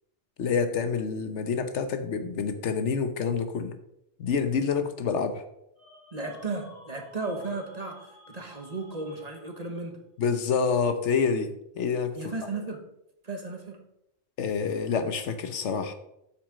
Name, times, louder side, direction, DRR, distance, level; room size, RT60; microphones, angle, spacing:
voice 1, 0.4-3.7 4.2-5.4 10.2-12.2 14.4-15.9, left 5 dB, 85° left, 9 dB, 1.2 m, -27 dB
sound 1, 5.8-9.9, left 1 dB, 40° left, 2.3 m, -53 dB
voice 2, 6.1-10.0 12.1-12.8 13.2-13.8, right 3 dB, 35° right, 4 dB, 1.2 m, -35 dB
8.3 x 6.2 x 5.0 m, 0.80 s
omnidirectional pair, 1.2 m